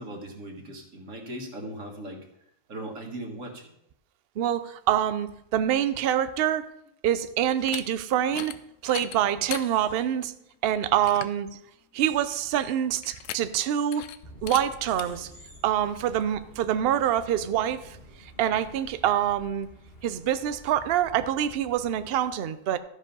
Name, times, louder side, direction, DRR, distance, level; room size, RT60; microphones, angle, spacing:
voice 1, 0.0-2.3 2.7-3.7, right 1 dB, 85° right, 1 dB, 2.1 m, -38 dB
voice 2, 4.4-6.7 7.0-8.5 8.8-10.3 10.6-11.5 11.9-14.1 14.4-15.3 15.6-18.0 18.4-19.7 20.0-22.8, right 10 dB, 60° right, 12 dB, 0.7 m, -26 dB
sound 1, 7.5-7.8 8.3-8.6 8.9-9.7 10.2-10.3 10.7-10.8 11.0-11.4 13.0-13.7 13.9-14.2 14.5-14.6 15.0-15.1, left 11 dB, 90° left, 1.0 m, -37 dB
sound 2, 9.4-10.0 12.0-12.8 14.9-15.6, left 1 dB, 65° left, 3.0 m, -52 dB
sound 3, 14.2-22.1, equal, 50° left, 1.8 m, -50 dB
13.5 x 5.1 x 5.4 m, 0.78 s
omnidirectional pair, 1.3 m